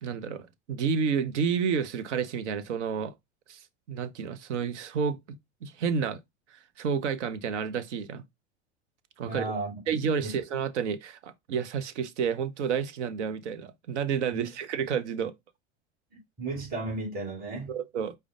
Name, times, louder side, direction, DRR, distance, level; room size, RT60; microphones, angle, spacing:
voice 1, 0.0-3.1 3.5-6.2 6.5-8.2 9.2-9.5 9.9-15.3 17.7-18.1, right 6 dB, 80° right, 0.7 m, -30 dB
voice 2, 9.3-9.7 10.2-10.4 14.3-14.5 16.4-17.8, right 3 dB, 25° right, 2.4 m, -34 dB
5.0 x 2.2 x 4.9 m
hypercardioid pair, 90°, 35 cm